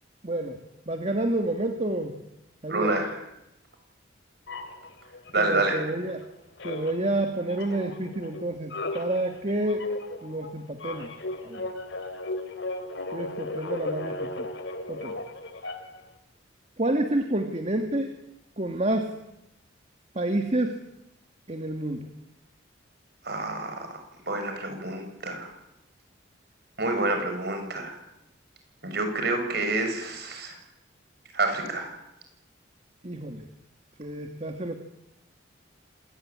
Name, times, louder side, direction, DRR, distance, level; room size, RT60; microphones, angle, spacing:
voice 1, 0.2-0.6 0.9-2.1 2.6-2.9 5.4-6.2 6.6-9.9 10.2-11.1 11.4-11.7 13.1-14.5 14.9-15.2 16.8-18.1 18.6-19.1 20.2-20.8 21.5-22.1 33.0-33.5 34.0-34.8, right 1 dB, 35° right, 5 dB, 1.9 m, -29 dB
voice 2, 2.7-3.2 5.3-5.8 23.2-24.0 24.2-25.5 26.8-28.0 28.8-30.6 31.3-31.9, right 2 dB, 55° right, 5 dB, 7.0 m, -28 dB
sound 1, 4.5-6.3 6.6-16.1, left 2 dB, 65° left, 3.0 m, -36 dB
27.0 x 18.5 x 9.8 m, 0.87 s
head